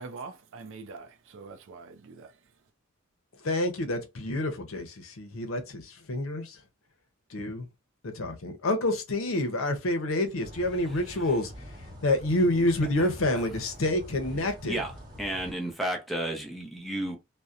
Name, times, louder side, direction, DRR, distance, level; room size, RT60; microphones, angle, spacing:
voice 1, 0.0-2.3, right 4 dB, 60° right, 0.4 m, -43 dB
voice 2, 3.4-6.6 7.3-7.7 8.0-11.5 12.0-14.8, left 1 dB, 70° left, 0.7 m, -28 dB
sound 1, 10.4-15.5, equal, 20° right, 1.0 m, -45 dB
voice 3, 15.2-17.2, right 1 dB, ahead, 0.6 m, -32 dB
2.6 x 2.1 x 2.4 m
head